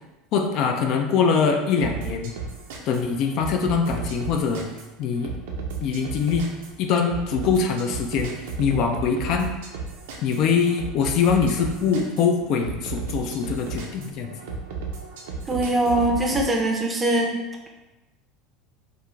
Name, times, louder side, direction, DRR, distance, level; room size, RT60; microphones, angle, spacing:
voice 1, 0.3-2.3 2.9-4.7 5.0-5.3 5.8-6.4 6.8-9.5 10.2-14.4, left 6 dB, 55° left, 4 dB, 0.3 m, -23 dB
sound 1, 1.8-16.5, right 4 dB, 85° right, 0.5 m, -34 dB
voice 2, 15.5-17.4, right 1 dB, 15° right, 0 dB, 0.5 m, -22 dB
2.4 x 2.4 x 3.0 m, 1.0 s
supercardioid pair, 115°, 0 cm